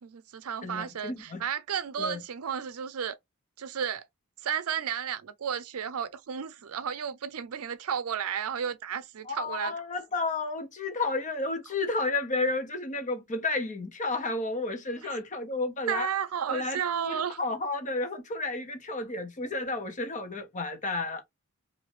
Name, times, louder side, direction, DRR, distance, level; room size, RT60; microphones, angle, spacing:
voice 1, 0.0-3.2 3.6-4.0 4.4-9.7 15.0-15.2 15.9-17.4, right 7 dB, 90° right, 0.5 m, -33 dB
voice 2, 0.6-1.4 2.0-2.2 9.2-16.1 16.5-21.2, left 3 dB, 35° left, 1.0 m, -32 dB
3.2 x 2.7 x 3.1 m
head